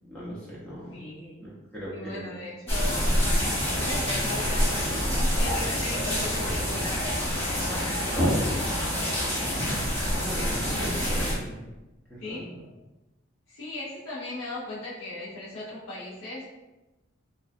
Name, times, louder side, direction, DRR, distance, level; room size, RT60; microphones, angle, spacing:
voice 1, 0.1-1.0 1.4-2.4 10.1-11.6 12.1-12.5, equal, 5° left, -8 dB, 0.4 m, -38 dB
voice 2, 0.9-1.5 1.9-8.4 12.2-12.5 13.5-16.4, left 2 dB, 80° left, -8 dB, 0.6 m, -38 dB
sound 1, 2.7-11.3, equal, 30° left, 1.0 m, -26 dB
2.4 x 2.3 x 2.5 m, 1.0 s
head